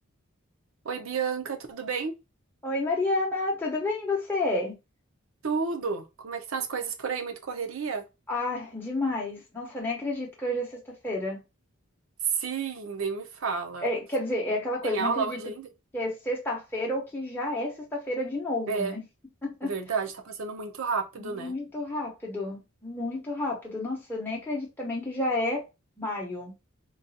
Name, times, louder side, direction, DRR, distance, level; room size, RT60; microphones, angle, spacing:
voice 1, 0.8-2.1 5.4-8.0 12.3-13.9 14.8-15.7 18.7-18.9 19.6-21.5, right 5 dB, 70° right, 0.6 m, -31 dB
voice 2, 2.6-4.7 8.3-11.4 13.8-15.4 15.9-19.0 19.4-19.7 21.2-25.6 26.0-26.5, left 2 dB, 10° left, 0.7 m, -30 dB
3.8 x 2.3 x 2.6 m
head